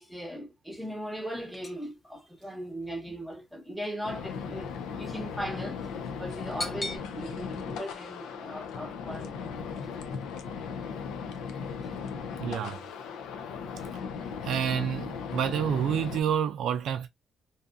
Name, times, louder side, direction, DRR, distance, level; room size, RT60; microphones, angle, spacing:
voice 1, 0.0-9.4 10.1-10.2, equal, ahead, 0.9 m, -39 dB
sound 1, 0.9-7.0, left 1 dB, 30° left, 0.6 m, -43 dB
sound 2, 4.0-16.2, left 6 dB, 85° left, 0.4 m, -37 dB
voice 2, 12.4-12.8 14.4-17.1, right 8 dB, 75° right, 0.4 m, -28 dB
2.6 x 2.4 x 2.5 m
cardioid pair, 90°, 0 cm